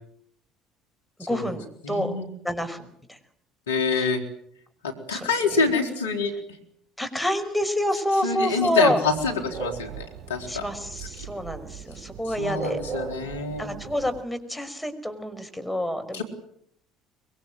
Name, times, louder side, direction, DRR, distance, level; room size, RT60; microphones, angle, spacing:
voice 1, 1.3-2.1 2.4-2.8 3.1-3.2 4.0-4.1 5.1-5.3 7.0-9.0 10.5-12.8 13.6-16.2, equal, 5° left, 9 dB, 5.5 m, -27 dB
voice 2, 1.8-2.3 3.7-4.2 4.8-6.3 8.2-10.6 11.0-11.1 12.3-13.7 16.1-16.2, left 4 dB, 85° left, 5 dB, 3.9 m, -26 dB
sound 1, 9.0-14.2, right 7 dB, 50° right, 1.8 m, -38 dB
24.5 x 23.0 x 7.9 m, 0.69 s
hypercardioid pair, 60°, 0 cm